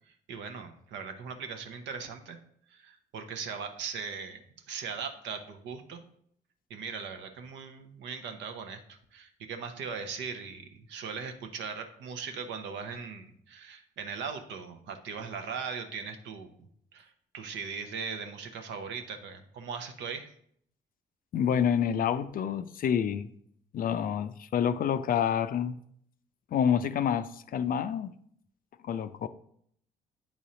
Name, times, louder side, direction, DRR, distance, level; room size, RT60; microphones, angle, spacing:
voice 1, 0.1-2.4 2.7-4.4 4.7-6.0 6.7-16.5 16.9-20.3, right 6 dB, 60° right, 6 dB, 0.8 m, -39 dB
voice 2, 21.3-23.3 23.7-25.8 26.5-28.1 28.8-29.3, left 8 dB, 45° left, 12 dB, 0.4 m, -28 dB
8.9 x 4.1 x 3.8 m, 0.66 s
figure-of-eight pair, 40°, 21 cm